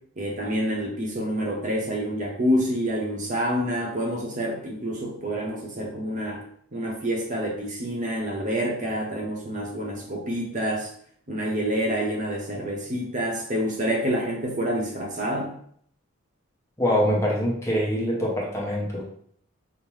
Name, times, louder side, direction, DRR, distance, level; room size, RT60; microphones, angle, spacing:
voice 1, 0.2-6.4 6.7-10.9 11.3-15.5, equal, 35° right, -1 dB, 0.7 m, -27 dB
voice 2, 16.8-19.1, equal, 15° left, -3 dB, 0.7 m, -24 dB
5.5 x 2.1 x 3.0 m, 0.63 s
head